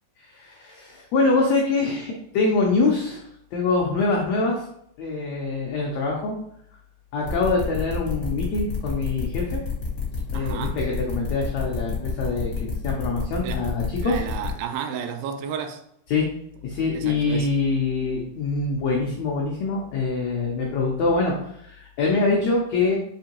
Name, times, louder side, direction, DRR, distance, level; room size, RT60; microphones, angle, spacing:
voice 1, 0.2-3.2 3.5-4.6 5.0-6.3 7.1-9.6 10.3-14.2 16.1-16.3 16.6-23.0, left 3 dB, 85° left, 1.5 m, -24 dB
sound 1, 7.2-14.5, left 3 dB, 65° left, 0.9 m, -29 dB
voice 2, 10.3-10.8 13.4-13.6 14.0-15.8 16.9-17.5, right 8 dB, 90° right, 2.3 m, -32 dB
6.6 x 2.6 x 2.9 m
omnidirectional pair, 3.9 m